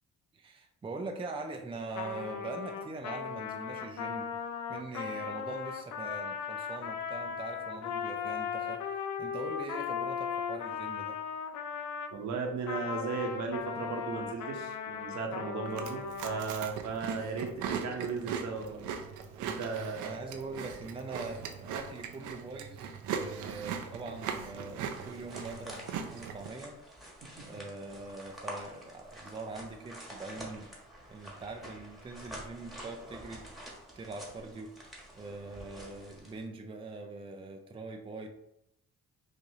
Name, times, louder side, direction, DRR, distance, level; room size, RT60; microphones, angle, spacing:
voice 1, 0.3-4.4 4.7-11.2 20.0-30.7 31.1-38.3, right 3 dB, 20° right, 4 dB, 0.4 m, -43 dB
Trumpet, 1.9-12.2 12.7-16.4, left 7 dB, 70° left, 0.5 m, -37 dB
voice 2, 12.1-18.8 19.4-20.2 27.2-27.5, right 5 dB, 65° right, 2 dB, 0.9 m, -36 dB
Chewing mastication, 15.7-26.5, right 7 dB, 85° right, 0.6 m, -39 dB
sound 1, 24.9-36.5, right 1 dB, ahead, 1.2 m, -48 dB
4.8 x 2.5 x 2.7 m, 0.80 s
cardioid pair, 90°, 30 cm